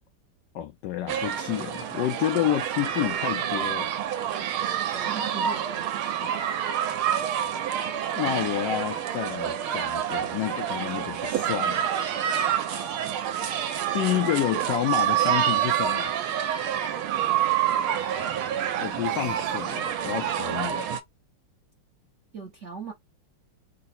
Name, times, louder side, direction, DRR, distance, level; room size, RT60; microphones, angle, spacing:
voice 1, 0.5-3.9 8.2-11.9 13.9-16.1 18.8-20.9, left 13 dB, 80° left, 1.0 m, -29 dB
sound 1, 1.1-21.0, right 10 dB, 75° right, 1.5 m, -27 dB
voice 2, 4.3-6.4 12.4-13.2 22.3-22.9, right 5 dB, 55° right, 0.8 m, -41 dB
3.8 x 2.0 x 4.2 m
omnidirectional pair, 2.4 m